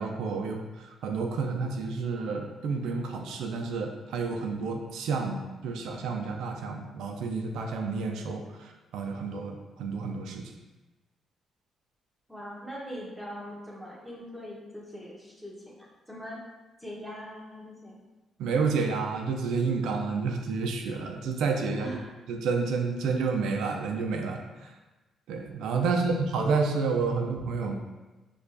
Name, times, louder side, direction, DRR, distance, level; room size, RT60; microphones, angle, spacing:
voice 1, 0.0-10.5 18.4-22.0 22.3-24.7 25.3-27.8, right 4 dB, 85° right, 3 dB, 0.4 m, -30 dB
voice 2, 12.3-16.4 16.8-18.0 21.8-22.1 25.8-26.1, equal, 5° left, -4 dB, 0.9 m, -42 dB
4.5 x 2.3 x 2.6 m, 1.1 s
cardioid pair, 90°, 0 cm